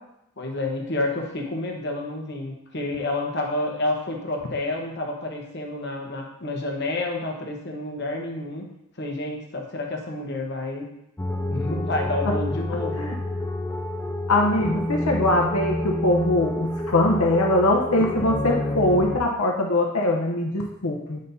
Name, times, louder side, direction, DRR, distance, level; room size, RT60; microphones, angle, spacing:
voice 1, 0.4-8.7 9.0-10.9 11.5-13.1, left 2 dB, 50° left, 1 dB, 1.2 m, -29 dB
sound 1, 11.2-19.2, left 1 dB, 10° left, 0.3 m, -29 dB
voice 2, 14.3-21.2, left 1 dB, 80° left, 0 dB, 0.9 m, -22 dB
9.8 x 5.2 x 2.8 m, 0.86 s
head